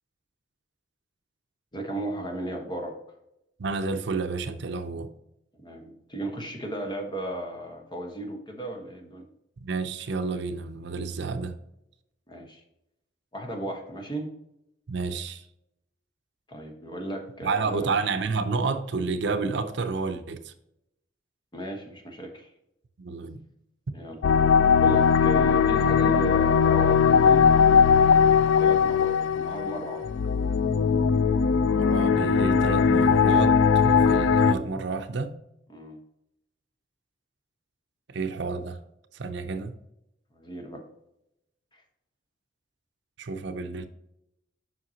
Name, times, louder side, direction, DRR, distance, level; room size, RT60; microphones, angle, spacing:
voice 1, 1.7-3.0 5.6-9.2 12.3-12.6 13.3-14.3 16.5-18.0 21.5-22.5 23.9-24.2 24.8-27.5 28.6-30.1 35.7-36.0 40.3-40.8, right 1 dB, 25° left, 1.2 m, -35 dB
voice 2, 3.6-5.1 9.6-11.6 14.9-15.4 17.4-20.5 23.0-23.4 31.7-35.4 38.1-38.8 39.1-39.8 43.2-43.9, right 4 dB, 65° right, 0.6 m, -30 dB
sound 1, 24.2-34.5, left 6 dB, 85° left, 0.3 m, -20 dB
7.7 x 5.7 x 2.8 m
head